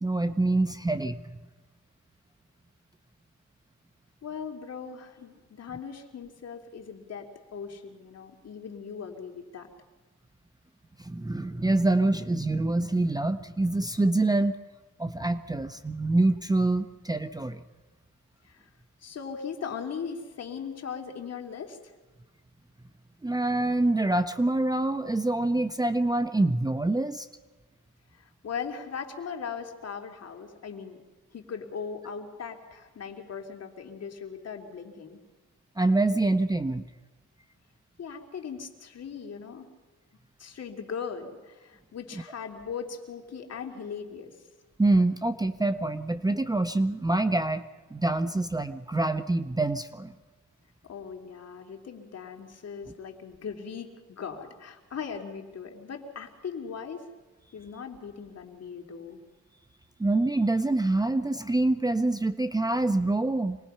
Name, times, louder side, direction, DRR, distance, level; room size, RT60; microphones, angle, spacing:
voice 1, 0.0-1.3 11.0-14.5 15.0-17.6 23.2-27.3 35.8-36.8 44.8-50.1 60.0-63.6, right 2 dB, 10° right, 11 dB, 0.7 m, -26 dB
voice 2, 4.2-9.7 18.4-18.7 19.0-21.9 28.1-31.0 31.3-35.2 38.0-39.7 40.4-44.3 50.9-57.0 57.5-59.2, left 6 dB, 55° left, 3 dB, 3.0 m, -39 dB
26.0 x 20.0 x 5.6 m, 1.3 s
cardioid pair, 90°, 31 cm